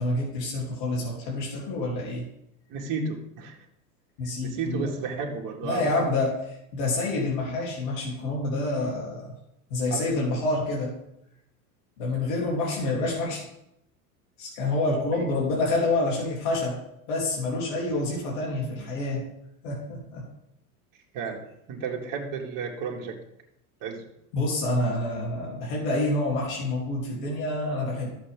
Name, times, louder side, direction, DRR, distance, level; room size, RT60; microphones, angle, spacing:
voice 1, 0.0-2.3 4.2-4.9 5.6-6.4 6.7-9.3 9.7-11.0 12.0-13.4 14.4-16.8 17.1-19.2 19.6-20.3 24.3-28.1, left 2 dB, 60° left, -3 dB, 3.3 m, -27 dB
voice 2, 2.7-3.6 4.4-6.0 9.9-10.0 12.7-12.8 15.1-15.3 21.1-23.2 23.8-24.1, right 5 dB, 45° right, 1 dB, 2.2 m, -32 dB
12.5 x 7.5 x 3.7 m, 0.80 s
hypercardioid pair, 100°, 45 cm